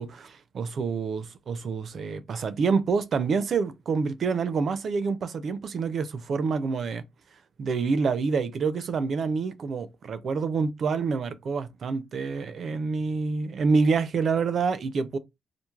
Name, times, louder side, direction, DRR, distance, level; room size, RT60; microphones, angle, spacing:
voice 1, 0.0-7.0 7.6-15.2, right 5 dB, 60° right, 0.4 m, -27 dB
3.1 x 2.0 x 2.4 m
supercardioid pair, 55°, 0 cm